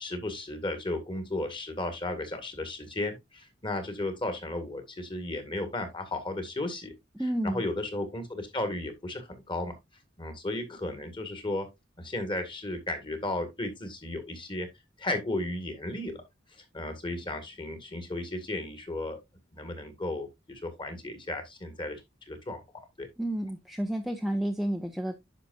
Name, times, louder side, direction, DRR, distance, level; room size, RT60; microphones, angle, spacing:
voice 1, 0.0-6.9 7.4-9.8 10.2-11.7 12.0-14.7 15.0-16.2 16.7-19.2 19.5-22.0 22.3-22.6 23.0-23.1, left 2 dB, 25° left, 2.0 m, -34 dB
voice 2, 7.2-7.6 23.2-25.2, right 1 dB, ahead, 0.7 m, -30 dB
10.0 x 5.9 x 2.6 m
head